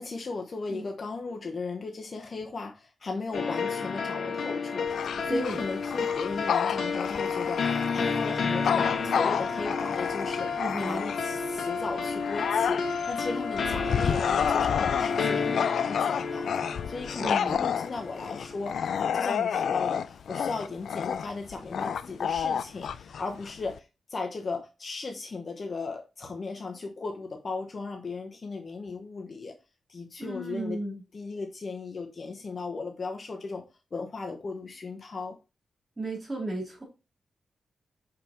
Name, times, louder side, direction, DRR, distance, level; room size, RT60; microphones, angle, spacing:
voice 1, 0.0-29.5 29.9-30.8 31.1-33.6 33.9-35.4, left 3 dB, 40° left, 0.9 m, -36 dB
sound 1, 3.3-18.7, left 5 dB, 55° left, 1.2 m, -31 dB
Bark / Growling, 4.9-11.4 11.9-23.8, left 7 dB, 75° left, 0.4 m, -30 dB
voice 2, 5.3-5.6 10.6-11.1 17.2-17.6 30.2-31.0 36.0-36.8, right 2 dB, 15° right, 3.4 m, -34 dB
5.8 x 5.2 x 4.3 m
wide cardioid pair, 145°, 0 cm